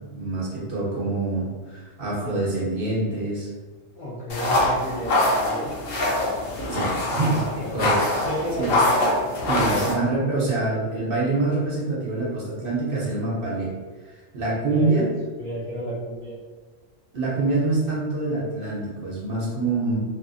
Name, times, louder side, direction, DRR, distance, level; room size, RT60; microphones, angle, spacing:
voice 1, 0.0-3.5 6.7-8.3 8.6-8.7 9.5-13.7 14.3-15.1 17.1-20.0, right 2 dB, 50° right, -7 dB, 0.9 m, -25 dB
voice 2, 3.9-5.7 8.1-8.9 14.6-16.3, equal, 60° left, -8 dB, 0.5 m, -32 dB
sound 1, 4.3-9.9, left 1 dB, 90° left, 1.1 m, -24 dB
2.7 x 2.4 x 2.3 m, 1.4 s
omnidirectional pair, 1.3 m